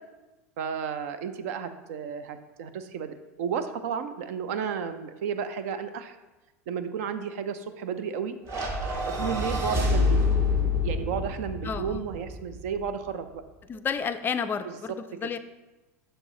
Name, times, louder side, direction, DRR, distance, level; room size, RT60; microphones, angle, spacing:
voice 1, 0.6-6.2 6.7-8.3 9.1-10.2 10.8-13.4, right 7 dB, 65° right, 10 dB, 0.5 m, -33 dB
sound 1, 8.5-12.9, left 3 dB, 40° right, 1.5 m, -27 dB
voice 2, 11.6-12.1 13.7-15.4, left 6 dB, 25° left, 11 dB, 0.3 m, -31 dB
6.5 x 4.6 x 3.9 m, 1.1 s
hypercardioid pair, 100°, 8 cm